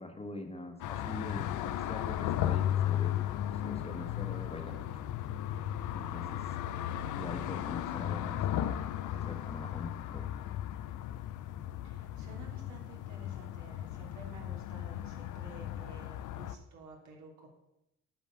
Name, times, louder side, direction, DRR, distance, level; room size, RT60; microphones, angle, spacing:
voice 1, 0.0-4.7 5.9-6.5 7.2-8.8 9.0-10.3, left 2 dB, 20° left, 5 dB, 1.3 m, -43 dB
sound 1, 0.8-16.5, left 12 dB, 80° left, 0.6 m, -35 dB
voice 2, 11.8-17.5, right 3 dB, 70° right, -1 dB, 3.0 m, -52 dB
8.6 x 5.1 x 6.8 m, 0.87 s
cardioid pair, 90°, 30 cm